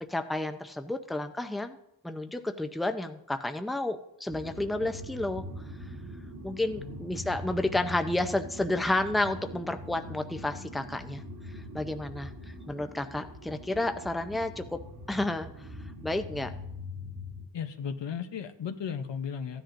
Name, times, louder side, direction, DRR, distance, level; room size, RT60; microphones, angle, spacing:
voice 1, 0.1-1.8 2.0-5.4 6.4-11.2 11.5-12.3 12.7-14.6 15.1-15.5 16.0-16.5, left 2 dB, ahead, 7 dB, 0.5 m, -31 dB
sound 1, 4.3-17.5, equal, 65° right, 2.4 m, -42 dB
voice 2, 17.5-19.6, left 7 dB, 90° left, 8 dB, 0.8 m, -35 dB
15.0 x 10.0 x 2.6 m, 0.81 s
wide cardioid pair, 75°, 42 cm